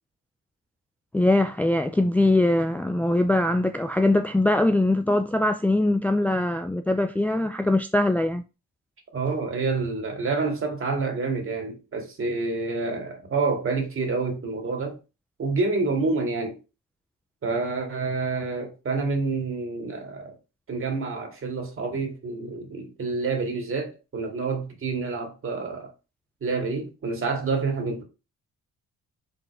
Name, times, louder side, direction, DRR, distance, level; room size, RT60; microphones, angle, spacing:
voice 1, 1.1-8.4, left 1 dB, 5° left, 0.4 m, -22 dB
voice 2, 9.1-15.0 15.4-16.6 17.4-20.4 20.7-25.9 26.4-28.0, right 4 dB, 45° right, 2.4 m, -28 dB
5.2 x 4.0 x 4.9 m
cardioid pair, 90°, 30 cm